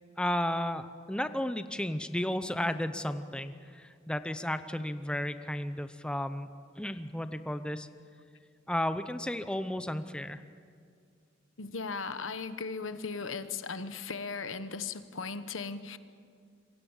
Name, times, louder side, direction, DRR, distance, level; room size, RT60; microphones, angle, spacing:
voice 1, 0.2-6.5 6.8-7.9 8.7-10.4, left 1 dB, 5° left, 10 dB, 0.8 m, -33 dB
voice 2, 11.6-16.0, left 4 dB, 85° left, 11 dB, 1.2 m, -37 dB
27.5 x 23.0 x 7.3 m, 2.2 s
head